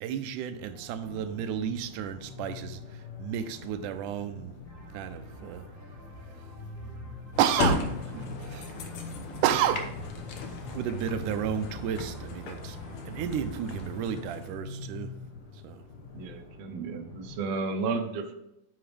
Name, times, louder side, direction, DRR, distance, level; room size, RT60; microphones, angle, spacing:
voice 1, 0.0-4.6 4.9-5.6 6.3-6.6 7.4-8.8 9.4-10.2 10.7-12.8 13.1-15.1 15.5-15.8, right 9 dB, 90° right, 9 dB, 2.2 m, -32 dB
sound 1, 0.6-17.4, left 5 dB, 75° left, 2.5 m, -45 dB
sound 2, 4.6-13.5, right 1 dB, 20° right, 2.6 m, -48 dB
sound 3, 7.3-14.6, left 2 dB, 60° left, 1.6 m, -35 dB
voice 2, 16.1-18.3, right 4 dB, 65° right, 5 dB, 1.9 m, -33 dB
9.2 x 7.9 x 3.4 m, 0.84 s
omnidirectional pair, 3.5 m